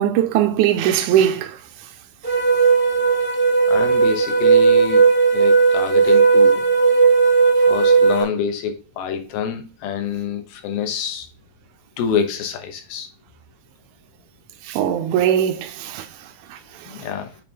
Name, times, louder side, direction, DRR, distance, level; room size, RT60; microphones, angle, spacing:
voice 1, 0.0-1.6 14.7-16.1 16.5-16.6, right 10 dB, 90° right, 1.8 m, -19 dB
sound 1, 2.2-8.2, right 5 dB, 50° right, 0.8 m, -15 dB
voice 2, 3.7-5.1 5.3-6.7 7.6-11.3 12.0-13.1 16.9-17.3, left 7 dB, 80° left, 2.9 m, -27 dB
8.5 x 3.5 x 3.2 m
omnidirectional pair, 4.4 m